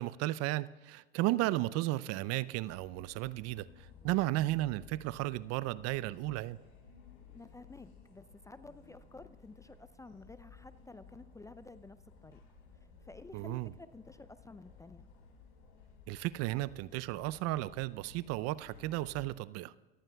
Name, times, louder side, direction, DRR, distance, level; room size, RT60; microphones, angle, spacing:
voice 1, 0.0-6.6 13.3-13.7 16.1-19.7, right 17 dB, 55° right, 0.5 m, -34 dB
sound 1, 2.6-19.2, left 6 dB, 60° left, 4.7 m, -57 dB
voice 2, 7.3-12.0 12.2-12.4 13.0-15.1, left 3 dB, 10° left, 0.5 m, -52 dB
26.0 x 14.5 x 2.3 m
hypercardioid pair, 80°, 30 cm